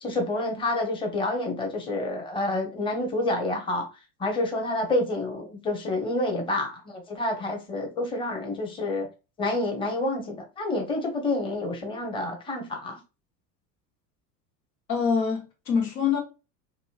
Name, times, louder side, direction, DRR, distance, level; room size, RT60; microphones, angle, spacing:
voice 1, 0.0-3.9 4.2-9.1 9.4-13.0, left 2 dB, 10° left, 0.7 m, -28 dB
voice 2, 14.9-16.2, left 6 dB, 85° left, 1.1 m, -25 dB
3.0 x 2.5 x 2.4 m
hypercardioid pair, 85°, 49 cm